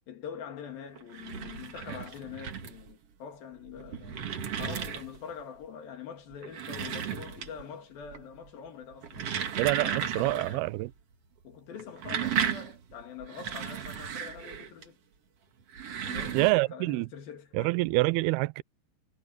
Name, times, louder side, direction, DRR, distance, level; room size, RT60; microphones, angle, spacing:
voice 1, 0.1-4.3 4.6-9.3 9.8-10.7 11.4-15.0 16.0-17.8, left 7 dB, 60° left, 3.8 m, -44 dB
sound 1, 1.0-2.9 3.6-5.3 6.3-7.7 8.0-8.5 8.9-10.6 10.9-11.0 11.8-14.8 15.6-16.5, right 8 dB, 50° right, 1.9 m, -35 dB
voice 2, 9.6-10.9 16.3-17.1 17.5-18.6, right 21 dB, 80° right, 2.3 m, -26 dB
omnidirectional pair, 4.9 m